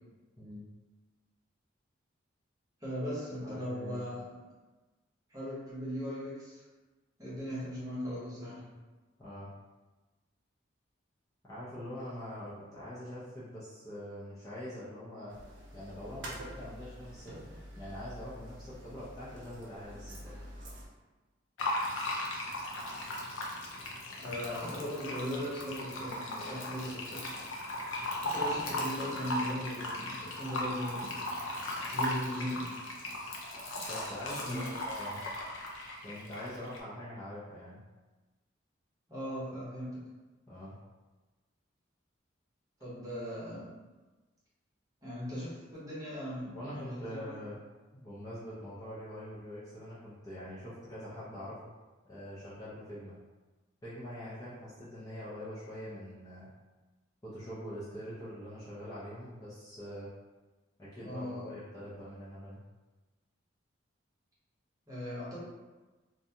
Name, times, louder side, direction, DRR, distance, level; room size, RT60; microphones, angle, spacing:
voice 1, 2.8-4.4 5.3-6.6 7.2-8.7 24.2-27.2 28.2-31.4 31.9-32.6 34.4-34.6 39.1-40.0 42.8-43.7 45.0-47.4 61.0-61.5 64.9-65.4, equal, 15° right, -9 dB, 0.8 m, -38 dB
voice 2, 3.4-4.1 9.2-9.5 11.5-15.4 15.7-17.3 17.7-20.3 33.9-35.2 36.0-37.8 40.5-40.8 46.5-47.6 47.9-51.7 52.1-53.2 53.8-56.5 57.2-60.1 60.8-62.6, equal, 15° left, -11 dB, 0.5 m, -44 dB
sound 1, 15.3-20.9, equal, 65° right, 0.5 m, -47 dB
Fill (with liquid), 21.6-36.8, left 1 dB, 85° left, 0.5 m, -37 dB
2.5 x 2.2 x 2.7 m, 1.2 s
head